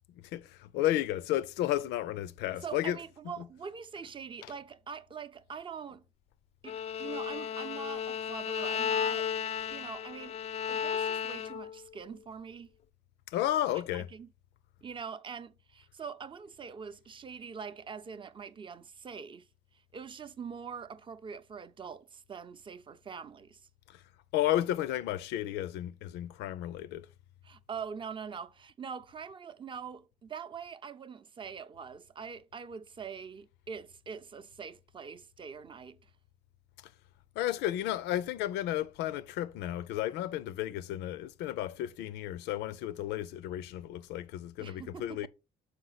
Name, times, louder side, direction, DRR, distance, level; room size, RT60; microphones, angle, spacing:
voice 1, 0.2-3.5 4.4-4.5 13.3-14.1 24.3-27.1 37.4-45.3, left 13 dB, 90° left, 0.5 m, -33 dB
voice 2, 2.6-6.0 6.6-9.3 9.7-10.4 10.7-12.7 13.9-14.3 14.8-19.5 19.9-23.6 27.4-36.1 44.6-45.3, right 6 dB, 30° right, 0.5 m, -43 dB
Bowed string instrument, 6.6-11.8, left 8 dB, 40° left, 0.4 m, -34 dB
6.6 x 4.9 x 4.0 m
cardioid pair, 110°, 17 cm